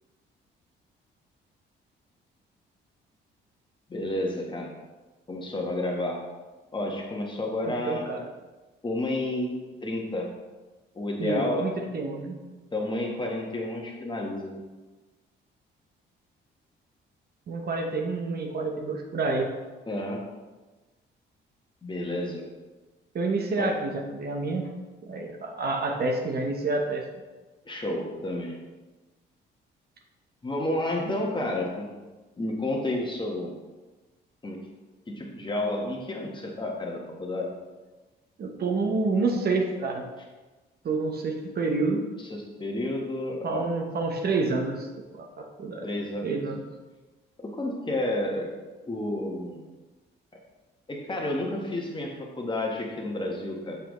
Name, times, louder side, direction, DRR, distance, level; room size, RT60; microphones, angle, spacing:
voice 1, 3.9-4.7 5.3-6.3 6.7-8.1 8.8-10.3 10.9-11.8 12.7-14.5 19.9-20.3 21.8-22.5 23.6-23.8 27.7-28.6 30.4-31.9 32.4-33.5 34.4-34.7 35.1-37.5 42.3-43.7 45.8-46.3 47.4-48.5 48.9-49.7 50.9-53.8, left 1 dB, 25° left, 0 dB, 1.3 m, -31 dB
voice 2, 7.6-8.2 11.2-12.4 17.5-19.5 23.1-24.7 25.0-27.0 38.4-40.1 40.8-42.0 43.4-45.8 46.2-46.6, right 3 dB, 50° right, 2 dB, 1.0 m, -28 dB
6.9 x 5.8 x 3.1 m, 1.2 s
cardioid pair, 90°, 20 cm